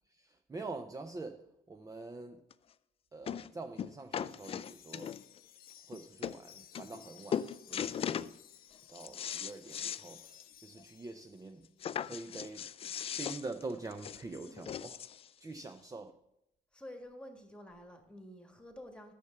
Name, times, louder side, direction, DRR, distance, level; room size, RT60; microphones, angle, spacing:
voice 1, 0.1-2.4 3.1-5.2 5.9-8.3 8.9-10.2 10.6-11.7 12.0-12.7 13.2-15.0 15.4-16.2, right 3 dB, 20° right, 7 dB, 0.7 m, -45 dB
sound 1, 2.5-2.6 3.3-3.5 3.8-5.4 5.9-6.0 6.2-6.4 6.7-7.1 7.3-8.3 8.7-10.0 10.4-10.5 10.8-10.9 11.8-15.3 16.1-16.2, left 9 dB, 35° left, 0.4 m, -38 dB
Wind chime, 4.2-11.7, left 11 dB, 60° left, 0.8 m, -58 dB
voice 2, 16.7-19.1, left 1 dB, 5° left, 5 dB, 1.9 m, -50 dB
10.5 x 6.8 x 6.6 m, 0.83 s
cardioid pair, 110°, 17 cm